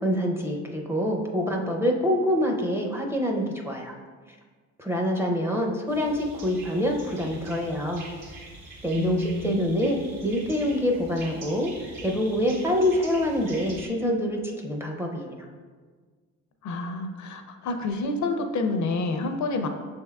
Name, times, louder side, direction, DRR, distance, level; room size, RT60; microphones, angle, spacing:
voice 1, 0.0-3.9 4.8-8.0 8.8-11.7 12.0-15.4, equal, 5° right, 0 dB, 0.5 m, -26 dB
sound 1, 5.9-13.9, right 2 dB, 70° right, 1.2 m, -44 dB
voice 2, 9.0-9.7 16.6-19.7, left 3 dB, 60° left, 5 dB, 0.5 m, -28 dB
5.8 x 3.5 x 2.3 m, 1.5 s
cardioid pair, 85°, 34 cm